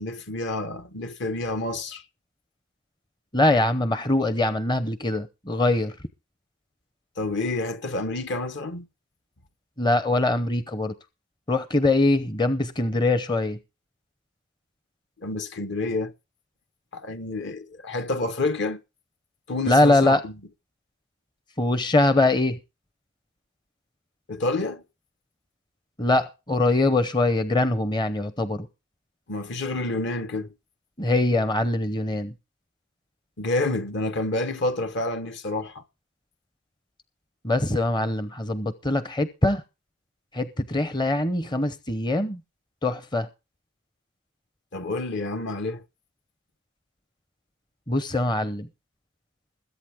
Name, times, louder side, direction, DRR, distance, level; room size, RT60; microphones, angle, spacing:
voice 1, 0.0-2.0 7.2-8.9 15.2-16.1 16.9-18.8 19.5-20.3 24.3-24.8 29.3-30.5 33.4-35.8 44.7-45.8, left 2 dB, 55° left, 1.2 m, -29 dB
voice 2, 3.3-6.0 9.8-10.9 11.5-13.6 19.7-20.2 21.6-22.6 26.0-28.7 31.0-32.3 37.4-39.6 40.3-42.4 42.8-43.3 47.9-48.7, left 2 dB, 20° left, 0.7 m, -23 dB
21.5 x 8.6 x 3.5 m
head